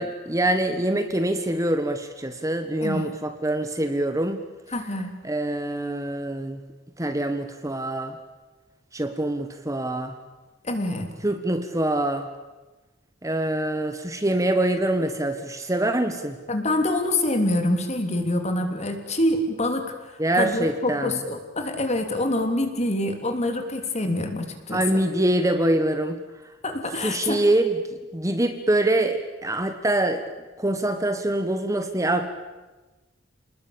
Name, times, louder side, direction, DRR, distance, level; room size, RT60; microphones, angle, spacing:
voice 1, 0.0-4.4 5.2-6.6 7.0-8.2 8.9-10.1 11.2-12.3 13.2-16.4 20.2-21.2 24.7-26.2 27.0-27.8 28.1-30.2 30.6-32.3, right 1 dB, 15° right, 8 dB, 1.4 m, -24 dB
voice 2, 2.8-3.1 4.7-5.1 10.6-11.1 16.5-19.9 20.3-25.0 26.6-27.4, left 1 dB, 35° left, 6 dB, 3.2 m, -26 dB
28.5 x 20.0 x 8.8 m, 1.2 s
head